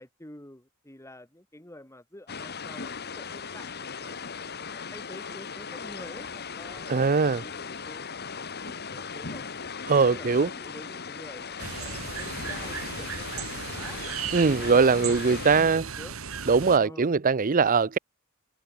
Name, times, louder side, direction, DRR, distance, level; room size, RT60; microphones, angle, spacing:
voice 1, 0.0-4.2 4.6-8.1 8.7-9.4 10.1-14.0 14.5-16.2 16.8-17.1, left 1 dB, 15° left, 2.8 m, -48 dB
sound 1, 2.3-15.6, left 5 dB, 50° left, 2.1 m, -38 dB
voice 2, 6.9-7.4 9.9-10.5 14.3-15.8 16.5-18.0, right 5 dB, 40° right, 0.6 m, -21 dB
sound 2, 11.6-16.8, right 7 dB, 75° right, 2.3 m, -36 dB
head